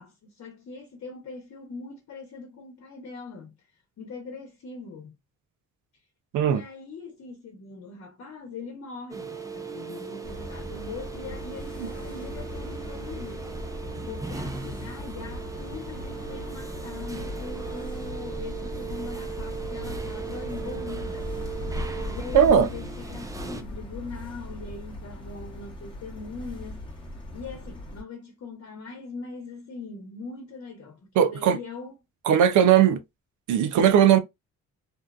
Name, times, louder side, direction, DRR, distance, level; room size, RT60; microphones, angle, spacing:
voice 1, 0.0-3.6 4.0-5.1 6.5-13.6 14.1-21.3 22.1-26.9 27.3-31.9, left 4 dB, 55° left, 1.0 m, -41 dB
sound 1, 9.1-23.6, right 5 dB, 10° right, 0.4 m, -38 dB
sound 2, 10.2-28.0, left 1 dB, 15° left, 1.0 m, -38 dB
voice 2, 22.3-22.7 31.2-31.6 32.3-33.0 33.5-34.2, right 9 dB, 75° right, 0.6 m, -18 dB
2.7 x 2.3 x 2.3 m
cardioid pair, 90°, 30 cm